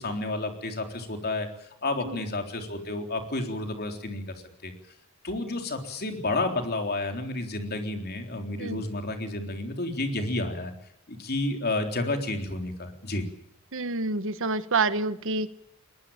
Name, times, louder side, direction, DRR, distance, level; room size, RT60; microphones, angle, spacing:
voice 1, 0.0-4.7 5.2-10.7 11.1-13.2, left 2 dB, 45° left, 4 dB, 3.7 m, -31 dB
voice 2, 13.7-15.5, right 3 dB, 60° right, 13 dB, 1.3 m, -28 dB
21.5 x 20.5 x 8.9 m, 0.74 s
head